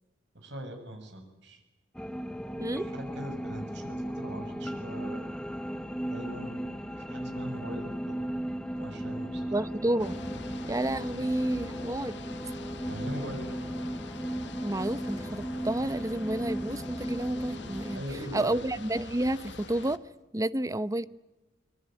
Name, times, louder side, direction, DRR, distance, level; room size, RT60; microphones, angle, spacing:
voice 1, 0.3-1.6 2.8-5.2 6.1-6.6 6.9-8.2 8.8-9.9 12.9-13.7 17.9-18.6, equal, 70° right, 5 dB, 7.2 m, -41 dB
sound 1, 1.9-18.0, equal, 5° left, 1.0 m, -36 dB
voice 2, 9.5-10.2 10.6-12.2 14.6-18.0 18.3-20.0 20.3-21.1, right 1 dB, 20° right, 15 dB, 0.9 m, -30 dB
capemay ferry watermono, 10.0-20.0, left 3 dB, 70° left, 1.8 m, -45 dB
24.5 x 23.0 x 9.1 m, 1.0 s
head